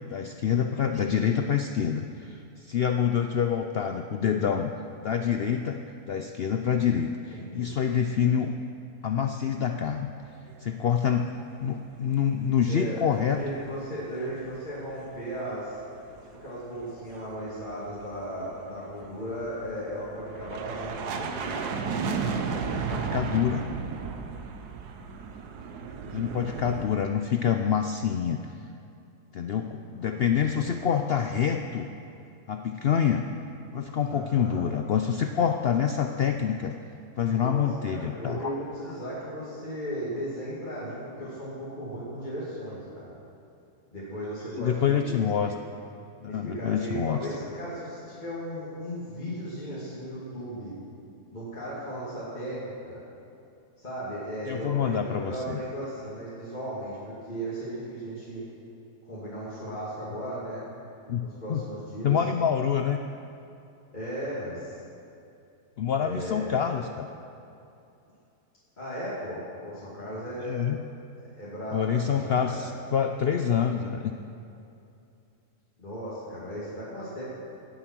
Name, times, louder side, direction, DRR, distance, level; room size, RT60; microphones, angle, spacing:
voice 1, 0.1-4.7 5.0-5.8 6.1-8.5 9.0-10.1 10.6-11.3 11.6-13.4 22.9-23.6 26.1-28.4 29.3-31.9 32.5-33.3 33.7-36.7 37.2-38.5 44.6-45.5 46.2-47.2 54.5-55.6 61.1-61.6 62.0-63.0 65.8-67.1 70.4-70.8 71.7-74.1, left 8 dB, 85° left, 6 dB, 0.5 m, -26 dB
voice 2, 7.3-7.7 12.7-15.8 16.4-21.6 26.4-27.0 27.6-27.7 29.9-30.9 34.1-34.7 37.2-43.1 43.9-45.6 46.3-50.7 51.3-53.0 53.8-58.5 59.0-60.6 61.2-62.2 63.9-64.8 66.0-66.7 68.8-70.6 71.2-72.7 75.8-77.2, equal, 30° left, -9 dB, 2.6 m, -36 dB
sound 1, 12.7-13.7 13.9-14.8 15.1-26.9, right 5 dB, 85° right, 1.4 m, -34 dB
17.0 x 7.7 x 6.1 m, 2.7 s
omnidirectional pair, 1.7 m